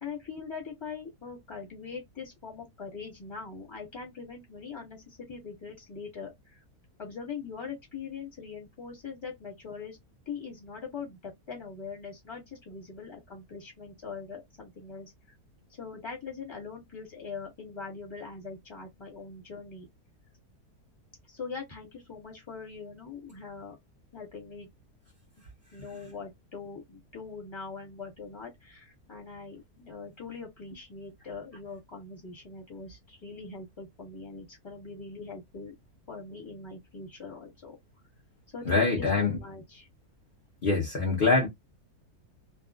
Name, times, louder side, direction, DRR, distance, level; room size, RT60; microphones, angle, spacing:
voice 1, 0.0-6.6 7.0-10.0 10.2-15.1 15.8-19.9 21.3-23.7 24.1-24.7 25.7-35.7 36.1-37.8 38.5-39.9, left 5 dB, 20° left, 1.2 m, -42 dB
voice 2, 38.7-39.4 40.6-41.5, left 3 dB, 45° left, 0.7 m, -24 dB
2.5 x 2.3 x 2.3 m
omnidirectional pair, 1.7 m